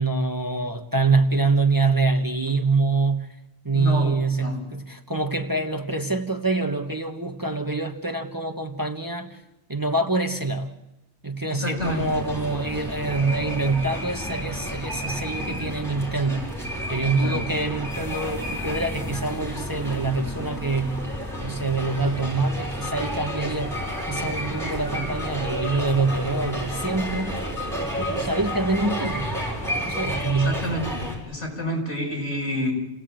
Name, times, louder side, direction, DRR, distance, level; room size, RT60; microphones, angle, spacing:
voice 1, 0.0-3.3 3.6-9.4 9.7-10.8 11.2-16.4 16.9-21.1 21.4-23.8 24.1-27.4 27.7-29.3 29.8-30.6, right 3 dB, 20° right, 1.3 m, -25 dB
voice 2, 3.7-4.6 11.5-12.2 17.2-17.4 30.4-32.7, equal, 85° left, 7.1 m, -29 dB
sound 1, 11.8-31.1, equal, ahead, 6.4 m, -31 dB
29.0 x 17.5 x 9.0 m
omnidirectional pair, 1.2 m